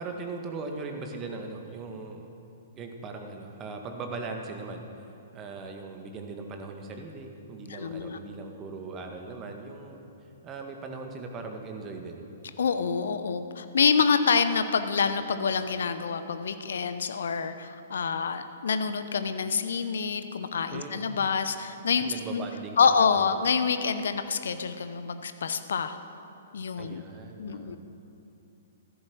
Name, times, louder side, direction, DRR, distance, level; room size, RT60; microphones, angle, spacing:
voice 1, 0.0-2.3 2.8-4.8 5.3-10.0 10.4-12.2 20.7-21.1 22.1-22.8 23.1-23.3 26.8-27.8, right 3 dB, 25° right, 3 dB, 1.9 m, -39 dB
voice 2, 7.7-8.2 12.6-22.4 22.8-26.0 26.5-27.0 27.4-27.8, left 6 dB, 60° left, 10 dB, 0.9 m, -27 dB
15.0 x 14.0 x 6.4 m, 2.7 s
figure-of-eight pair, 115°, 0 cm